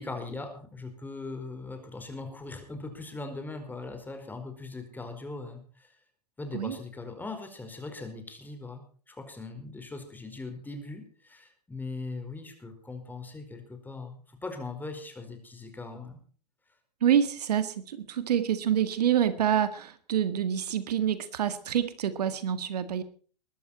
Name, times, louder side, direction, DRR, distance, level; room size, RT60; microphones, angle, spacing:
voice 1, 0.0-6.0 6.4-16.2, left 3 dB, 10° left, 5 dB, 4.8 m, -40 dB
voice 2, 17.0-23.0, right 9 dB, 75° right, 12 dB, 1.9 m, -27 dB
22.0 x 12.5 x 4.3 m, 0.43 s
hypercardioid pair, 110°, 21 cm